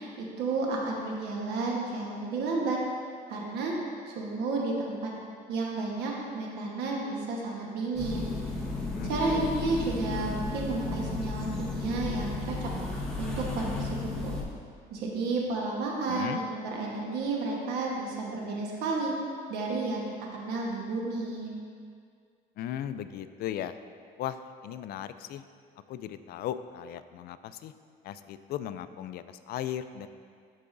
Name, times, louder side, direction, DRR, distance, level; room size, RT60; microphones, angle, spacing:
voice 1, 0.0-2.8 3.3-3.7 4.1-5.1 5.5-8.3 9.1-14.4 14.9-19.1 19.5-20.1 20.3-21.5, right 3 dB, 80° right, -2 dB, 1.2 m, -32 dB
sound 1, 7.9-14.4, left 2 dB, 5° left, 1.3 m, -34 dB
voice 2, 8.9-9.5 16.1-16.4 22.6-23.8 24.2-25.4 25.9-27.7 28.0-30.1, left 10 dB, 65° left, 11 dB, 0.4 m, -37 dB
13.5 x 4.8 x 2.6 m, 2.1 s
cardioid pair, 110°, 17 cm